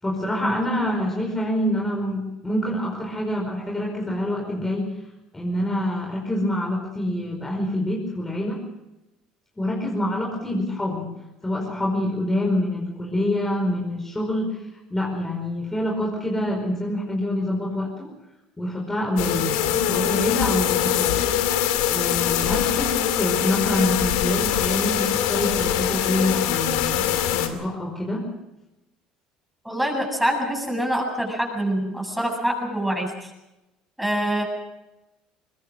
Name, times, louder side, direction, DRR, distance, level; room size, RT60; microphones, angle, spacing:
voice 1, 0.0-4.9 5.3-8.6 9.6-11.2 11.4-18.1 18.6-21.2 21.9-28.2, left 1 dB, 10° left, 0 dB, 4.8 m, -26 dB
sound 1, 19.2-27.5, left 11 dB, 90° left, 2.4 m, -23 dB
voice 2, 29.6-33.3 34.0-34.4, equal, 5° right, 1 dB, 7.8 m, -25 dB
23.0 x 20.0 x 6.3 m, 0.97 s
supercardioid pair, 95°, 2 cm